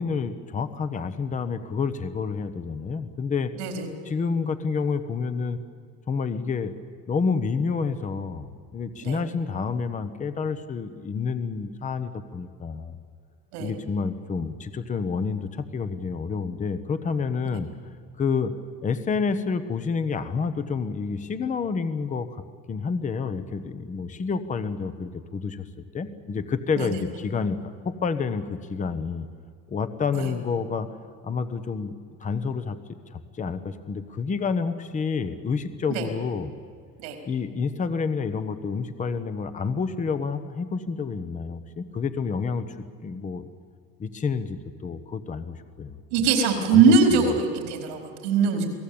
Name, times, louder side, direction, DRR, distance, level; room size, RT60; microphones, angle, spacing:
voice 1, 0.0-3.5 4.0-5.6 6.1-6.7 7.1-13.0 13.6-17.7 18.2-18.5 18.8-22.4 22.7-25.7 25.9-27.6 27.8-29.3 29.7-30.9 31.2-31.9 32.2-32.8 33.1-36.5 37.2-42.7 43.0-43.5 44.0-46.3 46.7-47.2, left 5 dB, 25° left, 11 dB, 1.2 m, -29 dB
voice 2, 3.6-3.9 9.0-9.2 13.5-13.7 26.8-26.9 30.1-30.3 35.9-36.1 37.0-37.2 46.1-48.7, right 5 dB, 90° right, 3 dB, 4.6 m, -21 dB
28.0 x 18.5 x 8.8 m, 2.2 s
cardioid pair, 130°, 32 cm